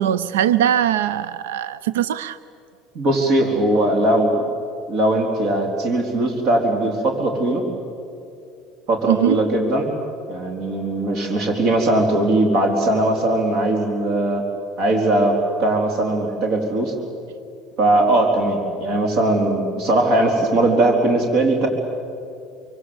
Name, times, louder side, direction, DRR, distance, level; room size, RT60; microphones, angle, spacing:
voice 1, 0.0-2.4 9.1-9.4, right 11 dB, 80° right, 16 dB, 0.6 m, -20 dB
voice 2, 2.9-4.4 4.9-7.6 8.9-9.9 10.3-14.4 14.8-16.9 17.8-21.7, right 1 dB, 60° right, 2 dB, 4.1 m, -19 dB
26.5 x 25.0 x 8.1 m, 2.6 s
hypercardioid pair, 75°, 0 cm